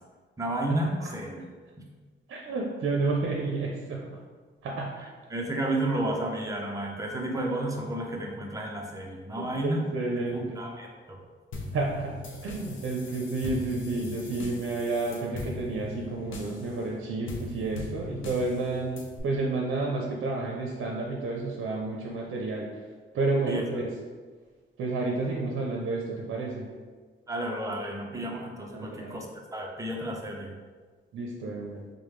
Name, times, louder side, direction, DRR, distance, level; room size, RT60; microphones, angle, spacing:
voice 1, 0.4-1.4 5.0-9.8 10.3-11.2 23.5-23.7 27.3-30.5, right 1 dB, 15° right, -1 dB, 0.6 m, -32 dB
voice 2, 2.3-4.1 4.6-4.9 9.3-10.6 11.7-12.2 12.4-22.7 23.1-23.9 24.8-26.7 28.7-29.2 31.1-31.8, right 3 dB, 75° right, -1 dB, 0.5 m, -30 dB
sound 1, 11.5-19.2, left 2 dB, 75° left, 0.6 m, -40 dB
5.0 x 2.1 x 3.1 m, 1.5 s
wide cardioid pair, 135°, 20 cm